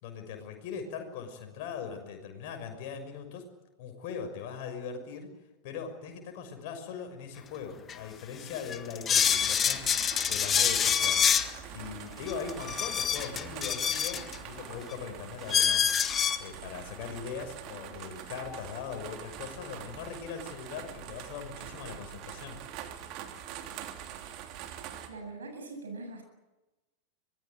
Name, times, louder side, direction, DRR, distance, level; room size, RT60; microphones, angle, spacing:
voice 1, 0.0-3.5 3.8-5.3 5.6-15.9 16.4-22.6, left 6 dB, 45° left, 5 dB, 6.4 m, -40 dB
sound 1, 7.9-8.0 8.5-11.5 12.3-14.4 14.9-15.0 15.5-16.4, left 8 dB, 25° left, 1.7 m, -26 dB
sound 2, 9.1-25.1, right 10 dB, 40° right, 3.1 m, -44 dB
voice 2, 25.1-26.2, right 3 dB, 70° right, 5 dB, 7.9 m, -42 dB
25.0 x 20.5 x 9.3 m, 1.1 s
figure-of-eight pair, 90°, 0 cm